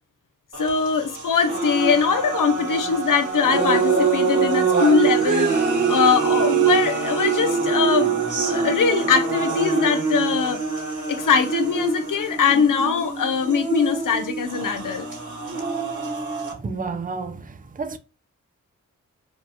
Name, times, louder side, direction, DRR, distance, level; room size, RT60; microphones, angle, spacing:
sound 1, 0.5-16.5, right 5 dB, 65° right, 1.7 m, -24 dB
voice 1, 0.6-5.5 5.9-8.1 8.4-10.6 11.1-15.1, left 6 dB, 75° left, 0.8 m, -21 dB
voice 2, 16.6-18.0, right 4 dB, 25° right, 0.6 m, -31 dB
4.6 x 2.4 x 2.8 m
cardioid pair, 50°, 32 cm